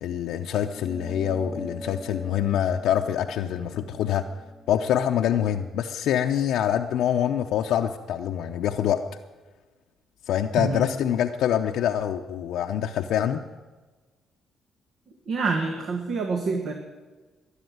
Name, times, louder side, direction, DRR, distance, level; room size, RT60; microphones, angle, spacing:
voice 1, 0.0-4.3 4.7-9.0 10.3-13.4, left 10 dB, 80° left, 4 dB, 0.7 m, -25 dB
sound 1, 0.7-5.5, left 1 dB, ahead, 1.5 m, -42 dB
voice 2, 10.6-10.9 15.3-16.7, right 4 dB, 65° right, 3 dB, 1.7 m, -27 dB
13.0 x 11.0 x 9.3 m, 1.3 s
cardioid pair, 90°, 0 cm